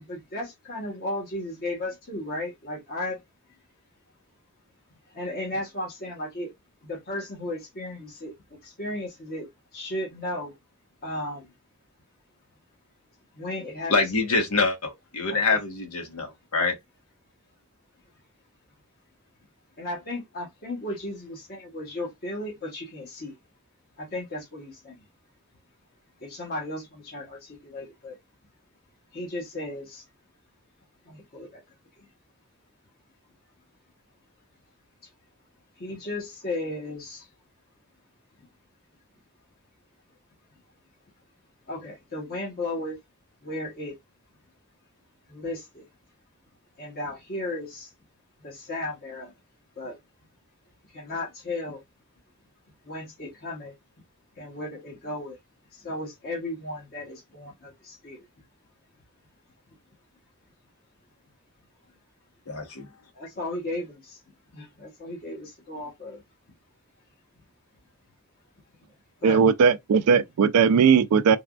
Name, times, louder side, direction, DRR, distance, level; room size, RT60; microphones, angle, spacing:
voice 1, 0.0-3.2 5.1-6.5 6.8-10.5 11.0-11.5 13.3-13.9 15.3-15.6 19.8-23.4 24.0-25.0 26.2-28.2 29.1-30.0 31.1-31.6 32.0-32.1 35.0-35.1 35.8-37.3 41.7-43.0 43.4-43.9 45.3-45.9 46.8-47.9 48.4-49.3 49.8-50.0 50.9-51.8 52.8-53.7 54.3-55.4 55.7-58.3 63.1-64.2 64.5-66.2 69.2-69.4, left 1 dB, 45° left, 1.0 m, -35 dB
voice 2, 13.9-16.7 62.5-62.9, left 3 dB, 85° left, 1.1 m, -25 dB
voice 3, 69.2-71.4, right 6 dB, 85° right, 0.4 m, -18 dB
3.3 x 2.2 x 2.3 m
head